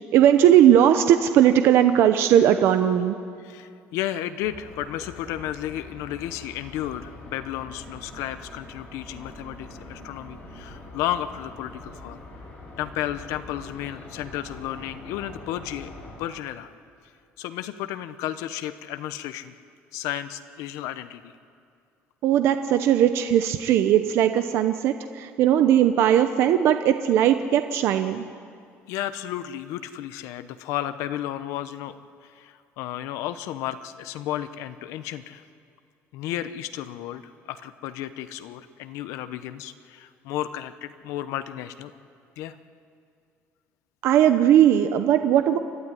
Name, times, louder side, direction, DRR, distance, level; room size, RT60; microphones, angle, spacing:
voice 1, 0.1-3.2 22.2-28.2 44.0-45.6, right 10 dB, 55° right, 8 dB, 0.8 m, -18 dB
voice 2, 3.4-12.2 12.8-16.7 17.4-19.5 19.9-21.3 28.9-31.9 32.3-35.4 36.1-41.9 42.4-42.6, left 12 dB, 85° left, 11 dB, 0.9 m, -33 dB
sound 1, 4.4-16.2, left 2 dB, 35° left, 6.4 m, -44 dB
29.0 x 12.5 x 9.8 m, 2.3 s
cardioid pair, 175°, 5 cm